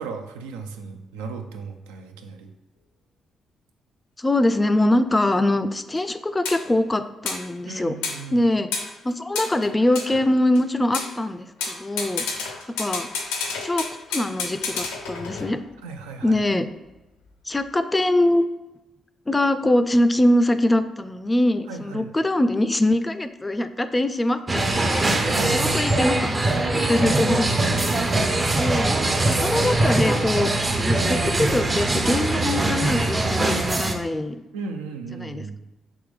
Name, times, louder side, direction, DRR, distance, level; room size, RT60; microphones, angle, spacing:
voice 1, 0.0-2.5 7.7-8.5 15.8-16.4 21.7-22.1 25.1-25.9 26.9-28.0 34.5-35.6, right 4 dB, 85° right, 5 dB, 0.3 m, -35 dB
voice 2, 4.2-7.9 8.3-8.7 9.0-12.2 12.8-13.1 13.6-15.6 16.2-16.7 17.5-18.4 19.3-25.1 25.5-26.3 26.7-27.5 28.6-28.9 29.2-30.5 30.9-34.4 35.2-35.4, left 1 dB, 20° left, 11 dB, 0.3 m, -23 dB
sound 1, 6.0-6.1 6.4-6.6 7.2-7.5 8.0-8.3 8.7-8.9 9.3-10.6 10.9-11.1 11.6-15.7, left 4 dB, 85° left, 0.5 m, -30 dB
sound 2, 24.5-33.9, right 2 dB, 35° right, 0.6 m, -22 dB
3.5 x 3.1 x 3.3 m, 1.0 s
hypercardioid pair, 45°, 0 cm